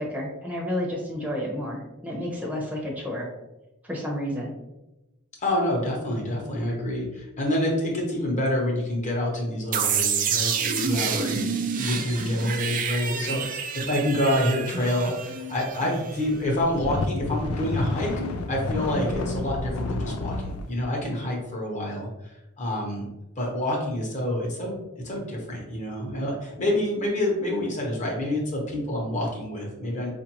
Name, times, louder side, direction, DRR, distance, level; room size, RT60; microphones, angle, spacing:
voice 1, 0.0-3.3 3.8-4.5, left 1 dB, 5° right, -3 dB, 0.8 m, -31 dB
voice 2, 5.4-11.4 11.8-18.1 18.5-23.1 23.4-24.8 25.0-30.1, left 1 dB, 35° left, -1 dB, 1.0 m, -27 dB
sound 1, 9.7-16.5, right 6 dB, 40° right, 0.4 m, -28 dB
sound 2, 16.4-20.7, left 2 dB, 70° left, 0.4 m, -30 dB
4.9 x 2.5 x 2.9 m, 0.99 s
head